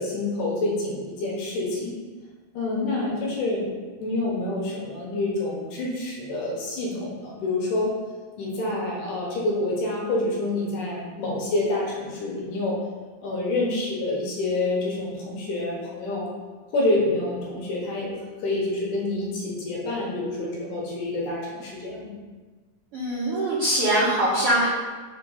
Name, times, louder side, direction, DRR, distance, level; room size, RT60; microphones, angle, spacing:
voice 1, 0.0-2.0 2.5-7.9 8.4-12.8 13.2-16.3 16.7-22.1, left 2 dB, 70° left, -3 dB, 2.6 m, -27 dB
voice 2, 22.9-24.7, right 1 dB, 75° right, -7 dB, 1.3 m, -22 dB
5.5 x 3.7 x 5.3 m, 1.4 s
omnidirectional pair, 4.1 m